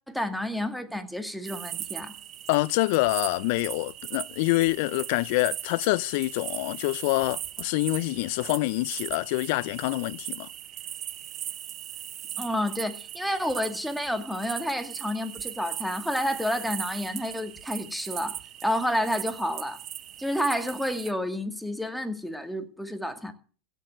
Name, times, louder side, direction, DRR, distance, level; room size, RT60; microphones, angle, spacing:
voice 1, 0.1-2.1 12.4-19.8 20.2-23.3, equal, ahead, 2.1 m, -30 dB
sound 1, 1.4-21.1, right 12 dB, 45° right, 0.9 m, -39 dB
voice 2, 2.5-10.5, left 21 dB, 65° left, 0.6 m, -26 dB
16.5 x 6.9 x 7.6 m
hypercardioid pair, 100°, 0 cm